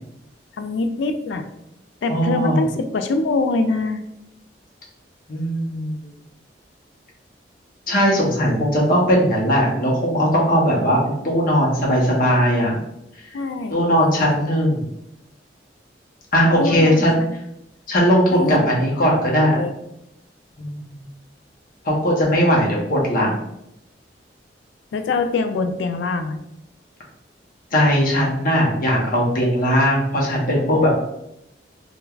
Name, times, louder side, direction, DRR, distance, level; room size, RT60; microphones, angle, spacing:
voice 1, 0.5-1.5 2.0-4.0 13.3-13.7 16.6-17.4 18.3-19.0 19.5-19.7 24.9-26.4, left 3 dB, 80° left, 8 dB, 0.3 m, -24 dB
voice 2, 2.1-2.6 5.3-6.1 7.9-12.8 13.7-14.9 16.3-17.2 17.9-19.6 20.6-21.1 21.8-23.4 27.7-30.9, equal, 50° left, -3 dB, 0.7 m, -19 dB
3.2 x 2.1 x 2.3 m, 0.83 s
head